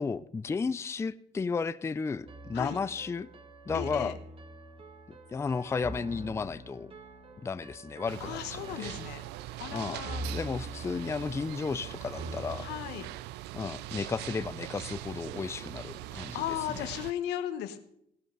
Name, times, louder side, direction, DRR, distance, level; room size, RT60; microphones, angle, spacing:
voice 1, 0.0-3.3 3.7-4.2 5.3-6.9 7.4-9.0 9.7-12.7 13.5-16.9, left 5 dB, 15° left, 0.4 m, -34 dB
sound 1, 2.3-13.1, right 2 dB, 35° right, 1.7 m, -44 dB
voice 2, 3.7-4.1 8.2-9.2 9.6-10.2 12.6-13.1 16.3-17.8, left 12 dB, 85° left, 1.3 m, -36 dB
real noisy library, 8.1-17.1, right 16 dB, 85° right, 0.5 m, -42 dB
17.0 x 13.0 x 4.0 m
cardioid pair, 110°, 17 cm